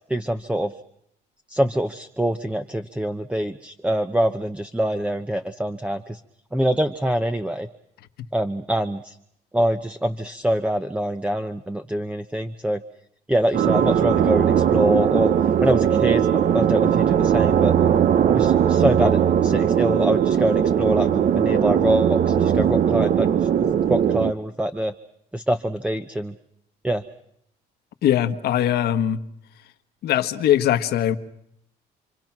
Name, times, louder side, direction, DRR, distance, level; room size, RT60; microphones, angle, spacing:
voice 1, 0.1-0.7 1.5-6.2 6.5-7.7 8.3-9.2 9.5-12.8 13.3-15.3 15.6-16.3 16.5-17.7 18.3-23.3 23.6-24.9 25.3-26.3 26.8-27.0, right 1 dB, 5° right, 0.9 m, -24 dB
sound 1, 13.5-24.3, right 9 dB, 50° right, 0.9 m, -19 dB
voice 2, 28.0-29.2 30.0-31.2, left 11 dB, 70° left, 1.5 m, -21 dB
29.0 x 24.0 x 6.1 m
cardioid pair, 110°, 17 cm